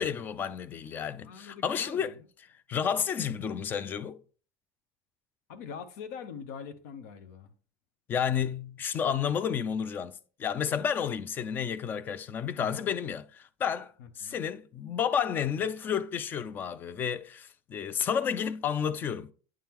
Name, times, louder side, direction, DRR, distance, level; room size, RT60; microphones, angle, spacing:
voice 1, 0.0-2.1 2.7-4.2 8.1-19.3, left 8 dB, 20° left, 0.3 m, -31 dB
voice 2, 1.2-2.2 5.5-7.5 12.5-13.0 14.0-14.4, left 6 dB, 80° left, 0.8 m, -44 dB
8.8 x 3.7 x 2.9 m
cardioid pair, 170°, 9 cm